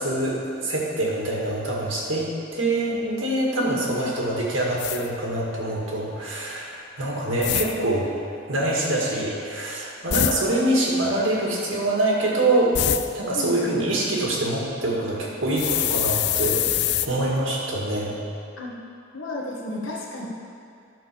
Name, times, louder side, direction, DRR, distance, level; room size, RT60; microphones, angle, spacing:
voice 1, 0.0-8.1 8.5-16.7 17.0-18.2, right 1 dB, 80° right, -3 dB, 1.9 m, -25 dB
voice 2, 3.7-4.0 13.3-13.8 18.6-18.8 19.1-20.3, left 2 dB, 80° left, -2 dB, 1.5 m, -33 dB
sound 1, 4.8-5.1 7.4-7.7 10.1-10.4 12.7-13.1 15.6-17.1, left 11 dB, 55° left, 0.4 m, -24 dB
11.0 x 4.5 x 6.7 m, 2.5 s
head